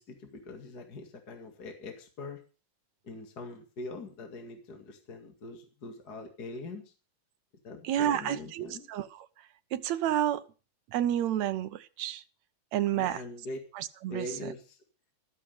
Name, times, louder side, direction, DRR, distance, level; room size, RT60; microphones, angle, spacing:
voice 1, 0.0-2.4 3.0-6.9 7.6-8.9 12.9-13.6 14.1-14.8, left 2 dB, 35° left, 2.4 m, -42 dB
voice 2, 7.8-9.5 9.7-10.4 10.9-12.2 12.7-13.2 13.7-14.5, right 11 dB, 75° right, 2.1 m, -30 dB
13.5 x 12.5 x 5.1 m
omnidirectional pair, 3.3 m